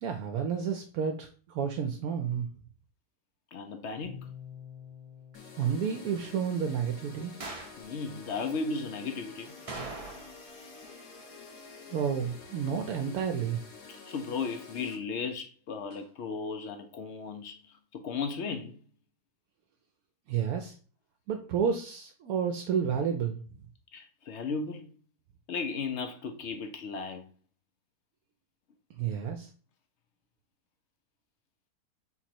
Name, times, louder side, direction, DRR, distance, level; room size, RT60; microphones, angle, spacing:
voice 1, 0.0-2.5 5.6-7.4 11.9-13.6 20.3-20.8 21.3-23.4 29.0-29.5, right 7 dB, 75° right, 1.0 m, -30 dB
voice 2, 3.5-4.3 7.8-9.5 13.9-18.8 23.9-25.0 25.5-27.3, left 4 dB, 65° left, 0.7 m, -35 dB
sound 1, 4.0-8.1, left 9 dB, 30° left, 0.8 m, -50 dB
sound 2, 5.3-15.0, left 4 dB, 85° left, 1.5 m, -49 dB
sound 3, 7.4-7.8 9.7-10.5 10.8-10.9 15.9-16.0, right 3 dB, 40° right, 0.5 m, -41 dB
3.8 x 3.0 x 4.3 m
omnidirectional pair, 1.7 m